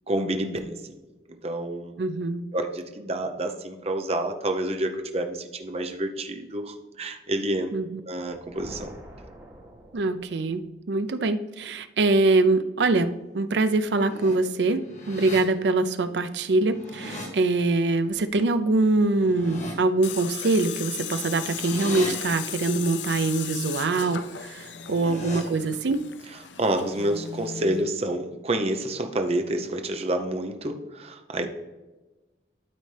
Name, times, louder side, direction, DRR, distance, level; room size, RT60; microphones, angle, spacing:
voice 1, 0.1-0.8 1.4-1.9 2.5-7.7 8.1-8.9 25.1-25.2 26.6-31.5, right 1 dB, 35° right, 5 dB, 0.7 m, -28 dB
voice 2, 2.0-2.5 7.7-8.0 9.9-13.1 13.3-14.8 15.1-26.0, right 3 dB, 75° right, 11 dB, 0.5 m, -24 dB
sound 1, 8.1-10.7, equal, 20° right, 2.5 m, -46 dB
sound 2, 13.8-14.4 14.8-15.4 16.5-17.3 19.1-19.7 21.0-22.1 24.6-25.4, left 1 dB, 45° left, 1.6 m, -38 dB
Tools, 20.0-27.8, left 9 dB, 90° left, 0.5 m, -37 dB
12.5 x 4.2 x 3.3 m, 1.1 s
head